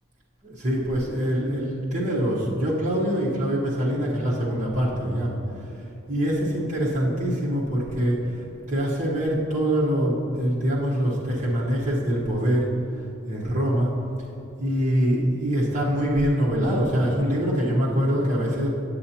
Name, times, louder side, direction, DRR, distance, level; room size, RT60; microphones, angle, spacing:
voice 1, 0.4-5.4 6.1-8.3 8.7-12.7 13.3-13.9 14.6-18.7, equal, 35° right, -7 dB, 1.1 m, -24 dB
8.6 x 7.8 x 2.9 m, 2.7 s
head